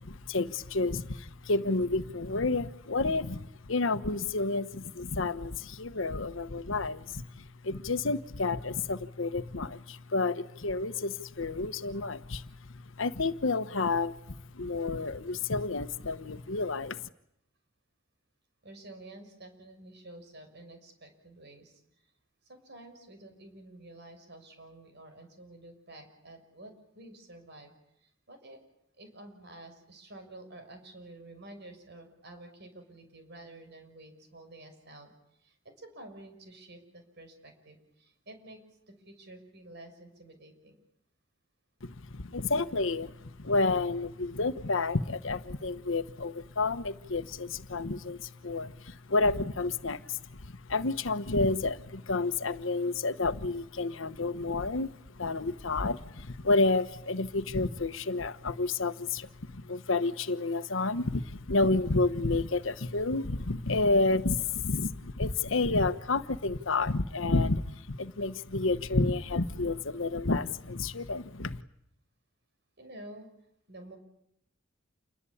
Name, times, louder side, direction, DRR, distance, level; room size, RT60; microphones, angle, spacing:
voice 1, 0.0-12.5 13.0-17.0 41.8-54.9 55.2-71.6, left 3 dB, 75° left, 12 dB, 1.2 m, -30 dB
voice 2, 18.6-21.8 22.4-27.7 28.0-28.6 29.0-35.1 35.4-40.8 64.4-64.5 72.8-73.3 73.7-74.0, right 1 dB, 60° right, 6 dB, 6.3 m, -50 dB
28.5 x 21.5 x 8.7 m, 0.78 s
head